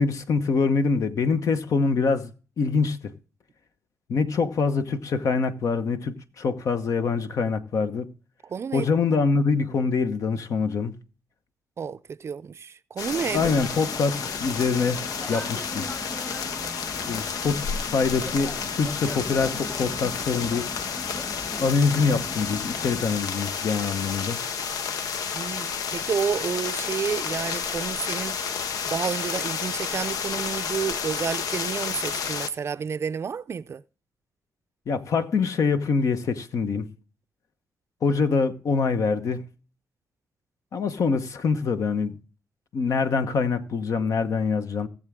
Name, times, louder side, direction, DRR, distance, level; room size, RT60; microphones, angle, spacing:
voice 1, 0.0-2.3 2.6-3.1 4.1-8.1 8.7-10.9 13.3-15.9 17.1-20.7 21.6-24.4 34.9-36.9 38.0-39.4 40.7-42.2 42.7-44.9, left 4 dB, 60° left, 1.0 m, -24 dB
voice 2, 8.4-8.9 11.8-13.5 25.3-28.4 28.9-33.8, right 6 dB, 45° right, 0.5 m, -30 dB
sound 1, 13.0-32.5, left 6 dB, 80° left, 0.9 m, -31 dB
sound 2, 13.1-23.0, left 1 dB, 30° left, 2.2 m, -38 dB
17.5 x 7.3 x 3.6 m
cardioid pair, 80°, 6 cm